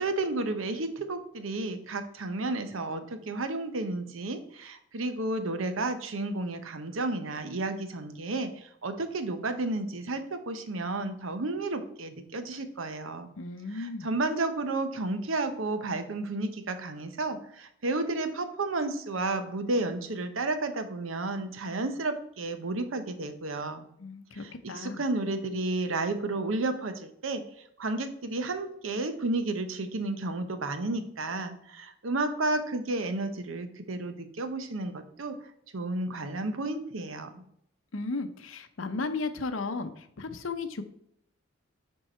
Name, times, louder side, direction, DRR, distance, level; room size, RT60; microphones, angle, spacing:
voice 1, 0.0-13.3 13.7-23.8 24.3-27.4 27.8-35.4 35.7-37.4, right 2 dB, 85° right, 9 dB, 0.8 m, -32 dB
voice 2, 13.4-14.1 24.0-25.0 37.9-40.8, left 3 dB, 80° left, 9 dB, 0.7 m, -35 dB
7.5 x 4.6 x 4.4 m, 0.70 s
head